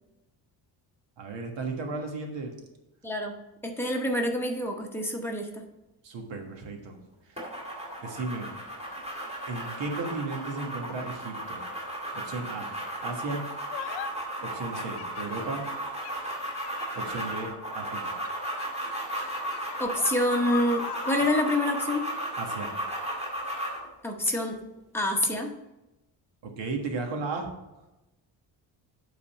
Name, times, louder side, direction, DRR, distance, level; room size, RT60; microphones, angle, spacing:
voice 1, 1.2-2.5 6.0-7.0 7.2-7.4 8.0-8.5 9.5-11.6 12.1-12.7 13.0-13.4 14.4-15.6 16.9-18.1 22.4-22.7 26.4-27.5, right 3 dB, 90° right, 3 dB, 1.6 m, -35 dB
voice 2, 3.0-3.3 3.6-5.6 19.8-22.1 24.0-24.6 24.9-25.5, left 1 dB, 5° left, 0 dB, 0.8 m, -27 dB
sound 1, 7.4-23.9, right 1 dB, 15° right, 2.2 m, -35 dB
sound 2, 13.7-14.1 14.7-17.5 18.2-21.4, left 11 dB, 65° left, 0.6 m, -41 dB
8.7 x 4.0 x 5.4 m, 0.99 s
cardioid pair, 165°, 42 cm